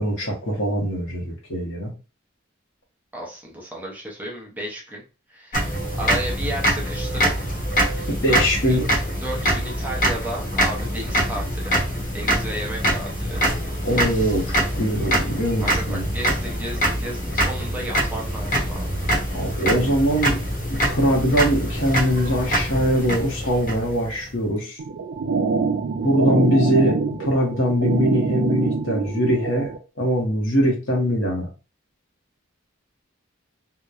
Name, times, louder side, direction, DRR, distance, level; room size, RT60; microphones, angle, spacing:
voice 1, 0.0-1.9 8.1-8.8 13.8-16.1 19.3-20.4 20.7-24.8 26.0-29.7 30.0-31.5, equal, 65° left, -1 dB, 0.9 m, -22 dB
voice 2, 3.1-5.0 5.3-7.3 8.3-8.9 9.2-11.8 12.1-13.4 15.6-18.9 19.2-19.6, right 1 dB, 10° right, -3 dB, 0.6 m, -33 dB
sound 1, 5.5-24.3, right 1 dB, 40° left, 0.9 m, -24 dB
sound 2, 24.8-29.8, right 4 dB, 65° right, 0.4 m, -24 dB
2.9 x 2.1 x 2.3 m, 0.31 s
head